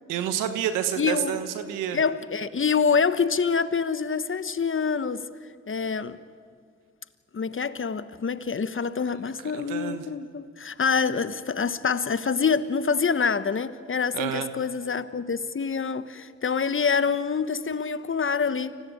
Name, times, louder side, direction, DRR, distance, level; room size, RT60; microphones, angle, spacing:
voice 1, 0.1-2.0 9.5-10.0 14.1-14.5, right 10 dB, 90° right, 1.4 m, -29 dB
voice 2, 1.0-1.4 1.9-5.3 5.7-6.2 7.3-18.8, left 5 dB, 40° left, 1.3 m, -26 dB
25.5 x 17.0 x 9.5 m
supercardioid pair, 45°, 31 cm